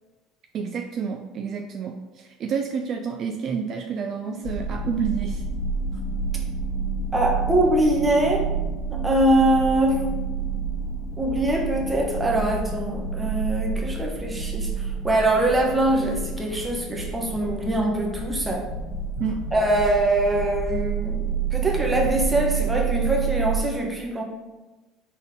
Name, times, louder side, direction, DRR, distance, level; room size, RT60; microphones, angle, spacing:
voice 1, 0.5-5.4 19.2-19.5, right 6 dB, 50° right, 4 dB, 0.3 m, -29 dB
sound 1, 4.3-11.1, left 6 dB, 70° left, 1.0 m, -44 dB
sound 2, 4.4-23.6, right 5 dB, 45° left, 0.5 m, -29 dB
voice 2, 7.1-8.4 8.9-10.1 11.2-14.7 15.0-18.7 19.5-24.2, right 1 dB, 15° right, -1 dB, 1.0 m, -23 dB
4.0 x 3.7 x 3.6 m, 1.2 s
supercardioid pair, 100°, 0 cm